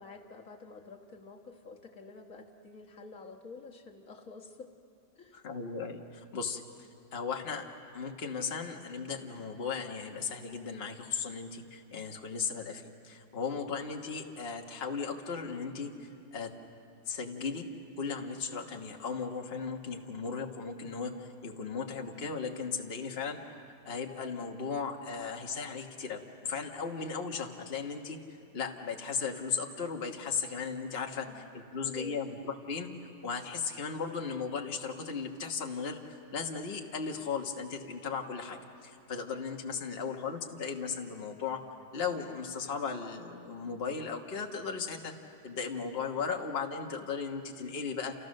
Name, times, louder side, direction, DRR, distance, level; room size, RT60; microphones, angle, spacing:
voice 1, 0.0-4.7 5.2-5.4 31.2-31.5 31.9-32.2, left 3 dB, 65° left, 2 dB, 1.8 m, -49 dB
voice 2, 5.3-6.6 7.1-7.7 7.9-16.5 17.1-17.7 18.0-23.4 23.8-28.2 28.5-32.9 33.2-41.6 41.9-45.1 45.4-48.1, left 5 dB, 45° left, 2 dB, 1.6 m, -36 dB
29.5 x 28.5 x 6.5 m, 2.6 s
omnidirectional pair, 1.6 m